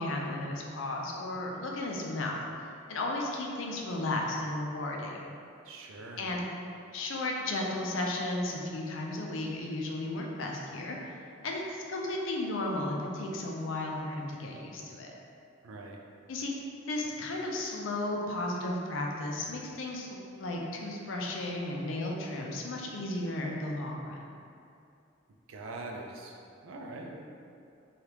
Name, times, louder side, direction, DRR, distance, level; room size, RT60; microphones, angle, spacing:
voice 1, 0.0-2.4 2.9-5.3 6.2-6.4 6.9-11.0 11.4-15.1 16.3-16.5 16.9-20.1 20.4-24.2, left 2 dB, 75° left, -1 dB, 0.4 m, -34 dB
voice 2, 5.6-6.4 15.6-16.0 25.5-27.2, right 2 dB, 85° right, 1 dB, 0.4 m, -43 dB
3.3 x 2.4 x 2.9 m, 2.5 s
head